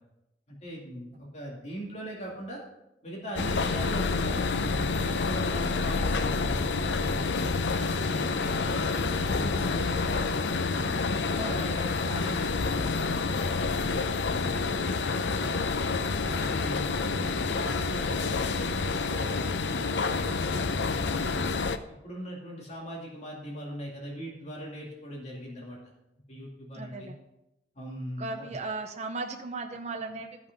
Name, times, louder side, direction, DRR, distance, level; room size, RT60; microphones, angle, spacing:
voice 1, 0.5-2.6 3.0-7.3 7.8-13.3 13.6-14.8 15.3-15.7 16.2-21.5 22.0-25.8 26.3-27.1 27.7-28.6, equal, 40° left, -3 dB, 2.3 m, -40 dB
sound 1, 3.4-21.8, left 4 dB, 80° left, 0.6 m, -28 dB
voice 2, 26.7-27.1 28.2-30.5, right 3 dB, 40° right, 4 dB, 0.7 m, -36 dB
13.5 x 5.9 x 5.2 m, 0.90 s
head